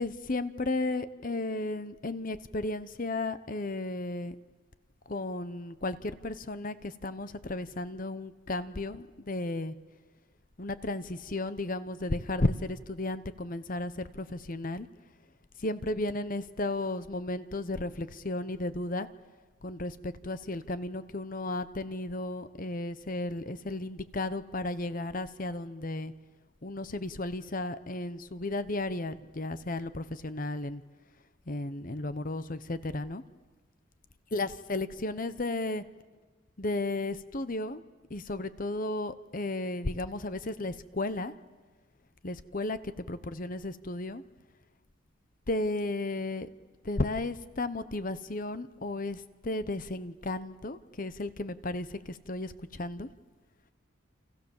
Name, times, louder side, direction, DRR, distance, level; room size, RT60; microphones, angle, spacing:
voice 1, 0.0-4.4 5.1-9.8 10.6-14.9 15.6-19.1 19.6-26.1 26.6-30.8 31.5-33.2 34.3-35.8 36.6-37.8 38.1-41.3 42.2-44.2 45.5-46.5 46.8-53.1, left 2 dB, 40° left, 13 dB, 1.0 m, -34 dB
29.5 x 27.5 x 7.3 m, 1.3 s
head